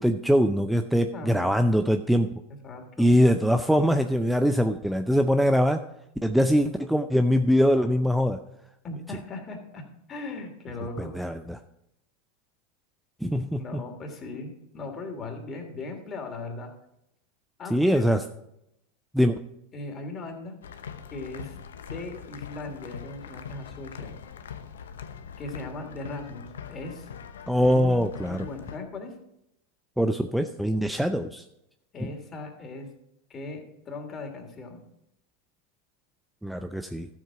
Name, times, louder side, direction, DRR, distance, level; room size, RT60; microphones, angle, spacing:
voice 1, 0.0-2.3 3.0-5.8 6.2-8.4 11.0-11.6 13.2-13.8 17.7-18.2 19.1-19.4 27.5-28.5 30.0-31.5 32.0-32.1 36.4-37.1, equal, ahead, 8 dB, 0.5 m, -23 dB
voice 2, 1.1-1.5 2.6-3.1 8.8-9.8 10.1-11.2 13.6-16.7 17.6-18.0 19.7-20.6 21.1-21.6 21.9-24.1 25.4-27.1 27.6-29.1 31.9-32.9 33.3-34.8, left 2 dB, 30° left, 3 dB, 2.7 m, -38 dB
sound 1, 20.6-28.8, left 7 dB, 80° left, 0.8 m, -42 dB
12.5 x 7.5 x 4.8 m, 0.82 s
hypercardioid pair, 90°, 0 cm